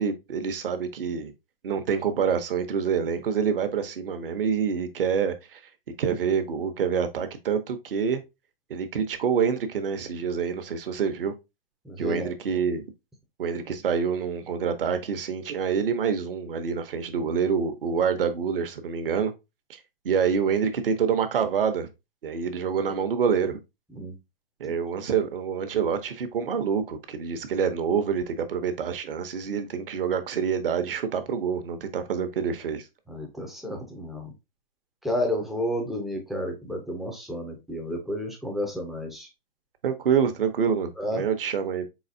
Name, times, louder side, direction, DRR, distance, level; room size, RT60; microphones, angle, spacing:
voice 1, 0.0-1.3 1.6-5.6 6.0-8.2 8.7-11.3 12.0-12.8 13.4-19.3 19.7-19.8 20.0-21.9 22.2-23.6 24.6-32.9 39.8-41.9, right 6 dB, 70° right, 0.9 m, -26 dB
voice 2, 11.8-12.6 23.9-24.2 24.6-24.7 33.1-34.3 35.0-39.3 41.0-41.2, left 1 dB, ahead, 0.3 m, -31 dB
4.0 x 4.0 x 2.6 m
hypercardioid pair, 130°, 29 cm